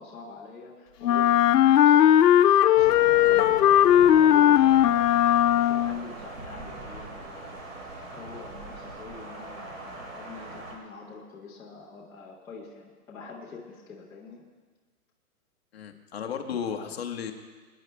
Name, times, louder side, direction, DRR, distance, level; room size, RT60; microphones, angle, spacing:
voice 1, 0.0-2.1 2.7-5.0 5.5-14.4, left 4 dB, 5° left, -9 dB, 0.8 m, -45 dB
Wind instrument woodwind instrument, 1.0-6.1, left 11 dB, 85° left, 0.6 m, -18 dB
Thunder, 2.8-10.8, right 2 dB, 55° right, 2.8 m, -41 dB
voice 2, 15.7-17.3, left 7 dB, 40° left, 4 dB, 1.1 m, -34 dB
22.5 x 9.7 x 3.3 m, 1.4 s
hypercardioid pair, 170°, 46 cm